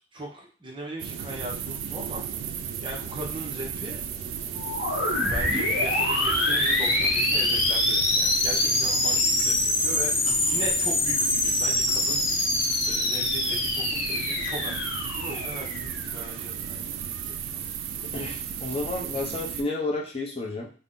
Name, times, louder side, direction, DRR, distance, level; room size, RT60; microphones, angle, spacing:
voice 1, 0.1-2.2 2.8-4.0 5.2-12.2 12.9-17.6, right 1 dB, 25° right, -1 dB, 0.6 m, -39 dB
sound 1, 1.0-19.6, right 8 dB, 90° right, 0.3 m, -34 dB
sound 2, 4.6-16.2, left 2 dB, 85° left, 0.8 m, -25 dB
voice 2, 18.1-20.7, left 2 dB, 30° left, -1 dB, 0.5 m, -31 dB
2.5 x 2.1 x 3.5 m, 0.41 s
head